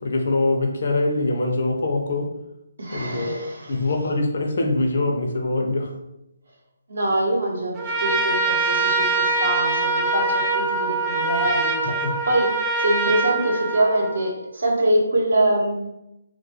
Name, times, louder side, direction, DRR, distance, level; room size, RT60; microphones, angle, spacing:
voice 1, 0.0-2.3 2.9-5.9 12.0-12.2, left 2 dB, 55° left, 2 dB, 0.4 m, -23 dB
voice 2, 2.8-3.9 6.9-12.0 12.2-12.5 12.8-15.7, right 1 dB, 70° right, -1 dB, 0.7 m, -24 dB
Trumpet, 7.7-14.3, right 3 dB, 15° right, 0.4 m, -23 dB
2.2 x 2.2 x 2.8 m, 0.88 s
figure-of-eight pair, 145°, 0 cm